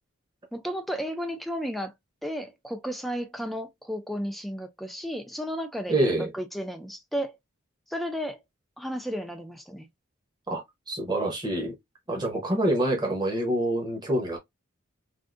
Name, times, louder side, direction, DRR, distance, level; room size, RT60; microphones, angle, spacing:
voice 1, 0.5-1.9 2.2-7.4 7.9-8.4 8.8-9.9, equal, ahead, 0.4 m, -33 dB
voice 2, 5.9-6.3 10.5-11.7 12.1-14.4, right 1 dB, 20° right, 0.9 m, -26 dB
3.6 x 2.5 x 2.5 m
head